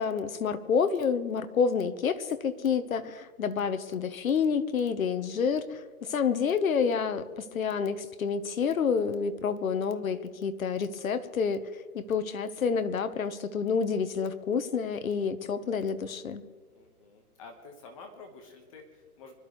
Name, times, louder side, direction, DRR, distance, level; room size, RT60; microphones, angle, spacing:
voice 1, 0.0-11.6 11.9-16.4, left 6 dB, 65° left, 11 dB, 1.3 m, -28 dB
voice 2, 16.7-19.4, left 4 dB, 20° left, 3 dB, 1.4 m, -49 dB
25.5 x 13.0 x 3.2 m, 1.5 s
hypercardioid pair, 165°, 45 cm